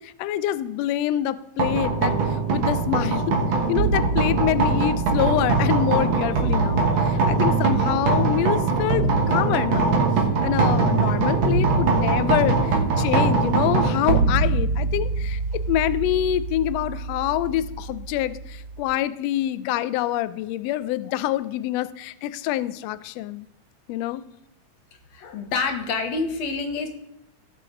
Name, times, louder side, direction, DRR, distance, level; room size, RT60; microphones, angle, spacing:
voice 1, 0.0-2.1 2.5-3.2 3.7-10.0 10.4-23.5 23.9-24.2, left 13 dB, 85° left, 14 dB, 1.4 m, -26 dB
sound 1, 1.6-18.8, right 4 dB, 50° right, 1.6 m, -22 dB
voice 2, 25.1-26.9, left 4 dB, 65° left, 6 dB, 2.2 m, -27 dB
17.0 x 5.9 x 3.8 m, 0.81 s
omnidirectional pair, 3.5 m